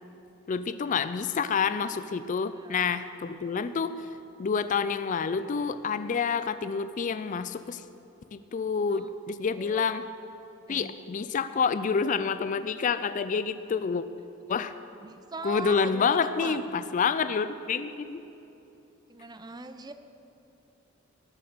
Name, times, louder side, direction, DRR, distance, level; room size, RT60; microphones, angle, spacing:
voice 1, 0.5-4.1 4.4-7.8 8.3-10.0 10.7-14.0 14.5-14.7 15.4-18.2, left 5 dB, 40° left, 13 dB, 0.4 m, -28 dB
voice 2, 2.5-2.9 8.9-9.2 9.5-9.9 10.7-10.9 15.0-16.6 19.1-19.9, right 3 dB, 20° right, 9 dB, 0.6 m, -41 dB
19.0 x 6.9 x 6.7 m, 3.0 s
head